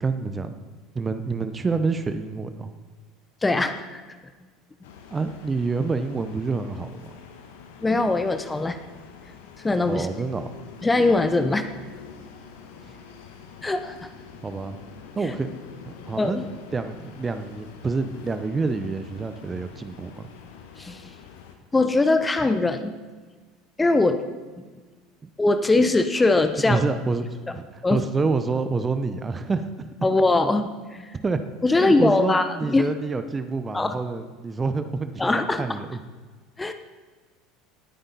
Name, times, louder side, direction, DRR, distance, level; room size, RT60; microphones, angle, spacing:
voice 1, 0.0-0.6 0.9-2.7 5.1-7.1 9.9-10.5 12.8-12.9 14.4-14.8 15.2-15.5 15.8-20.3 26.6-29.9 31.2-31.4 31.7-36.0, right 4 dB, 20° right, 9 dB, 0.8 m, -28 dB
voice 2, 3.4-4.0 7.8-8.8 9.6-10.1 10.8-11.7 13.6-14.0 16.2-16.5 20.8-21.0 21.7-22.9 23.8-24.2 25.4-26.8 27.5-27.6 27.8-28.0 30.0-31.1 31.6-32.8 33.7-34.0 35.2-35.8 36.6-36.7, left 2 dB, 15° left, 9 dB, 0.8 m, -21 dB
sound 1, 4.8-21.5, left 6 dB, 65° left, 1.3 m, -46 dB
19.0 x 9.1 x 4.1 m, 1.4 s
figure-of-eight pair, 70°, 0 cm